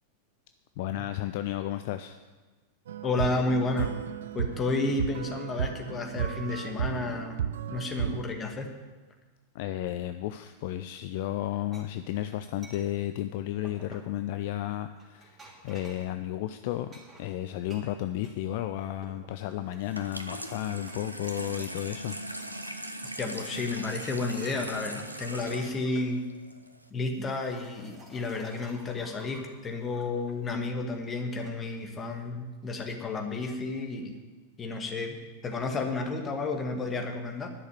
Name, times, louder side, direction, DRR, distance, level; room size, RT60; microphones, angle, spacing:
voice 1, 0.8-2.2 9.5-15.4 15.6-16.9 17.2-22.2, left 13 dB, 50° left, 10 dB, 0.5 m, -33 dB
sound 1, 2.9-8.2, right 9 dB, 60° right, 0.5 m, -33 dB
voice 2, 3.0-3.9 4.3-7.4 7.7-8.7 23.2-26.3 26.9-34.1 34.6-37.5, left 3 dB, 20° left, 3 dB, 1.9 m, -31 dB
sound 2, 11.7-11.8 12.6-12.9 13.6-14.2 15.0-16.1 16.9-18.4 18.7-19.3 19.7-20.6 20.9-21.5 21.8-22.8 23.0-23.5 24.1-26.1 26.9-30.4 31.1-31.5, right 2 dB, 20° right, 3.1 m, -52 dB
Water tap faucet / Sink (filling or washing), 19.8-26.9, right 1 dB, 85° right, 0.8 m, -40 dB
11.0 x 6.5 x 9.2 m, 1.3 s
figure-of-eight pair, 90°, 0 cm